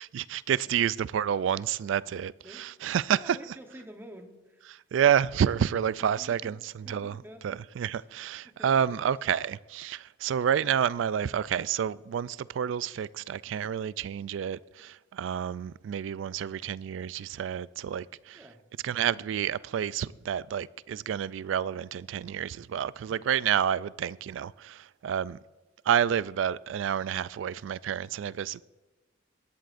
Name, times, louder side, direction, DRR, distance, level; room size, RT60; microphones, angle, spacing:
voice 1, 0.1-2.3 2.6-3.2 4.9-6.5 6.9-7.1 7.4-18.4 18.8-24.8 25.0-25.4 25.9-28.6, right 8 dB, 75° right, 0.3 m, -29 dB
voice 2, 1.9-4.7 6.0-6.6 6.8-7.5 7.9-8.1 8.4-9.2 18.3-18.6, equal, 10° right, 1.0 m, -50 dB
18.0 x 13.0 x 2.6 m
head